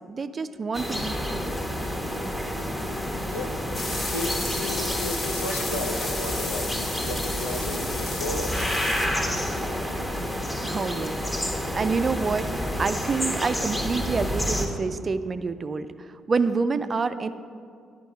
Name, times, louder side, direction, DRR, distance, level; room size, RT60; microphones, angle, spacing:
voice 1, 0.1-1.6 10.6-17.3, right 4 dB, 35° right, 12 dB, 0.4 m, -28 dB
sound 1, 0.7-14.7, equal, 15° left, 1.2 m, -29 dB
sound 2, 3.7-9.1, left 2 dB, 40° left, 1.3 m, -33 dB
voice 2, 4.0-8.8, left 2 dB, 80° left, 3 dB, 0.6 m, -34 dB
10.5 x 5.2 x 5.2 m, 2.3 s
figure-of-eight pair, 45°, 0 cm